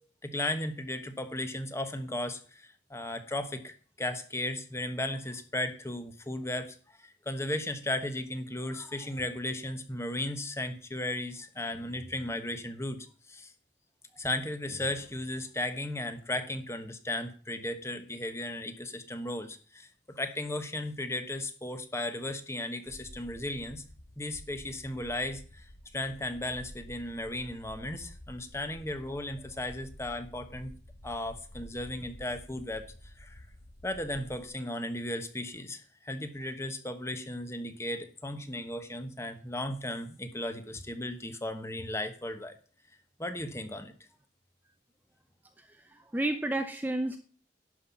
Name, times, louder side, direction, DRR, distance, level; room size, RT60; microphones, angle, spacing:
voice 1, 0.2-13.5 14.2-23.8 24.2-25.7 25.9-30.7 31.0-33.4 33.8-42.6 43.2-43.9, left 1 dB, 15° left, 8 dB, 1.1 m, -36 dB
sound 1, 22.9-34.5, equal, 85° left, 1.7 m, -50 dB
voice 2, 45.9-47.2, right 1 dB, 10° right, 7 dB, 0.6 m, -31 dB
11.5 x 5.7 x 8.4 m, 0.41 s
head